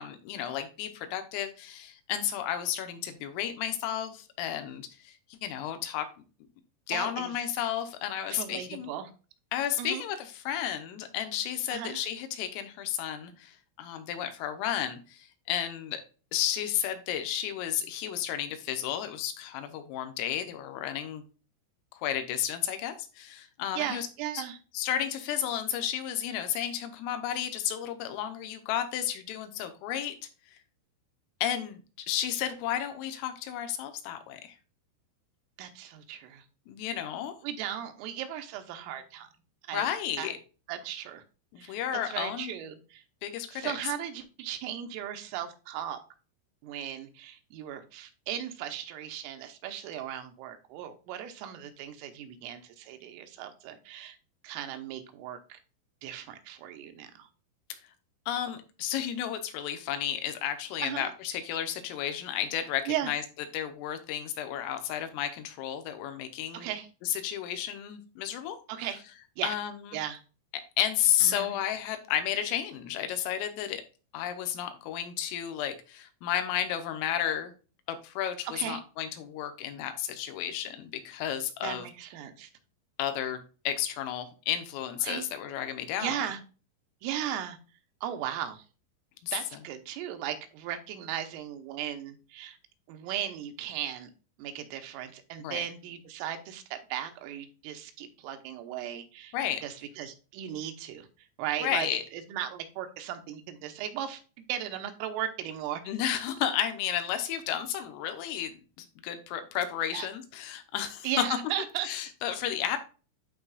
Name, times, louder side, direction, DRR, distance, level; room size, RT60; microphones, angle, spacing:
voice 1, 0.0-5.2 5.4-6.1 6.9-8.9 9.5-16.0 16.3-21.2 21.9-24.1 24.3-24.4 24.8-30.2 31.4-34.6 36.7-37.4 39.7-40.4 41.5-42.5 43.2-43.8 58.3-63.2 63.5-66.7 67.0-68.6 69.4-70.0 70.5-73.8 74.1-77.5 77.9-81.9 83.0-83.4 83.7-86.2 89.2-89.3 95.4-95.6 99.3-99.6 101.6-102.0 105.9-111.1 111.9-112.8, left 10 dB, 90° left, 8 dB, 3.5 m, -32 dB
voice 2, 6.9-7.4 8.3-9.1 9.8-10.0 11.7-12.0 23.8-24.6 35.6-36.4 37.4-39.3 39.7-39.9 40.2-40.3 40.7-41.2 41.6-43.0 43.5-46.0 46.6-54.2 54.4-55.6 56.0-57.3 60.8-61.1 62.9-63.1 66.5-66.9 68.7-69.0 69.4-69.5 69.9-70.2 71.2-71.5 78.5-78.8 81.6-82.5 85.0-85.3 86.0-86.4 87.0-87.6 88.0-88.6 89.3-92.6 92.9-94.1 94.4-99.4 99.6-101.1 101.4-105.8 109.9-110.1 111.0-111.9, right 10 dB, 80° right, 7 dB, 3.4 m, -37 dB
11.5 x 4.0 x 2.3 m, 0.34 s
omnidirectional pair, 5.8 m